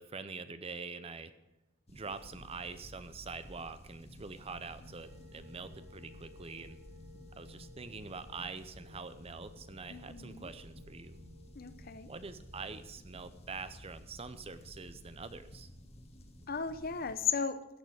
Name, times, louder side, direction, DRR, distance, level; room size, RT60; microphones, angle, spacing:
voice 1, 0.0-1.3 1.9-6.8 7.3-11.2 12.1-15.7, right 4 dB, 30° right, 12 dB, 0.6 m, -45 dB
sound 1, 1.9-17.1, equal, 30° left, 1.4 m, -54 dB
sound 2, 3.9-12.8, left 2 dB, 90° right, 2.1 m, -57 dB
voice 2, 9.9-10.5 11.5-12.1 16.5-17.6, left 6 dB, 50° left, 12 dB, 0.7 m, -35 dB
14.5 x 6.7 x 8.0 m, 0.95 s
head